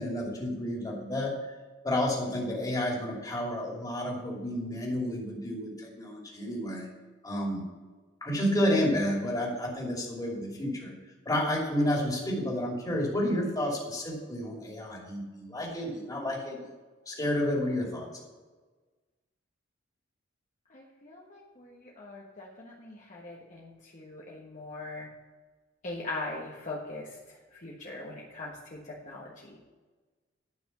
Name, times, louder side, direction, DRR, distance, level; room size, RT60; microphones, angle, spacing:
voice 1, 0.0-1.3 1.8-6.9 7.2-7.7 8.2-10.9 11.2-16.7 17.1-18.1, left 1 dB, 20° left, -2 dB, 2.7 m, -30 dB
voice 2, 20.7-25.1 25.8-29.6, left 2 dB, 40° left, -4 dB, 1.5 m, -41 dB
11.0 x 6.1 x 6.8 m, 1.3 s
head